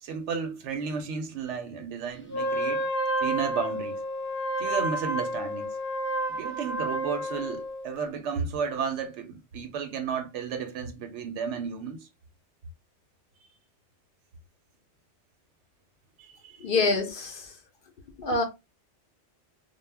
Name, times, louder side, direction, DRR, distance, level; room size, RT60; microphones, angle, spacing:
voice 1, 0.0-2.9 3.2-4.0 4.6-5.8 6.3-12.1 16.2-16.7, right 6 dB, 90° right, 0.9 m, -33 dB
Wind instrument woodwind instrument, 2.3-7.9, right 1 dB, 20° left, 0.3 m, -30 dB
voice 2, 16.6-17.5 18.2-18.4, left 3 dB, 60° left, 0.6 m, -26 dB
2.1 x 2.0 x 3.2 m
omnidirectional pair, 1.2 m